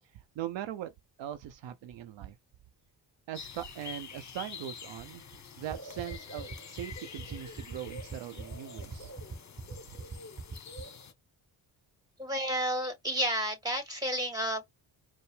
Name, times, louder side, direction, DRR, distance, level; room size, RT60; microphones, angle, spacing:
voice 1, 0.1-0.9 1.2-2.4 3.3-9.1, right 11 dB, 70° right, 0.7 m, -41 dB
sound 1, 3.3-11.1, left 5 dB, 40° left, 0.9 m, -46 dB
sound 2, 5.7-10.8, right 4 dB, 25° right, 0.8 m, -40 dB
voice 2, 12.2-14.6, equal, 10° right, 2.1 m, -31 dB
4.6 x 2.0 x 3.2 m
cardioid pair, 70°, 45 cm